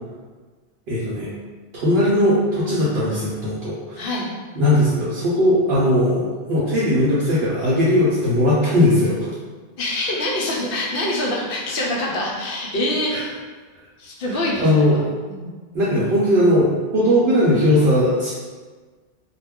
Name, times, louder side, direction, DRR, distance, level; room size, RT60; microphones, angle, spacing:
voice 1, 0.9-1.3 1.7-4.0 4.5-9.2 13.1-13.2 14.3-15.0 15.7-18.3, left 1 dB, 65° right, -8 dB, 0.8 m, -18 dB
voice 2, 4.0-4.3 9.8-13.3 14.0-15.0 15.3-15.5, left 1 dB, 60° left, -3 dB, 0.7 m, -25 dB
2.3 x 2.1 x 3.5 m, 1.4 s
omnidirectional pair, 1.2 m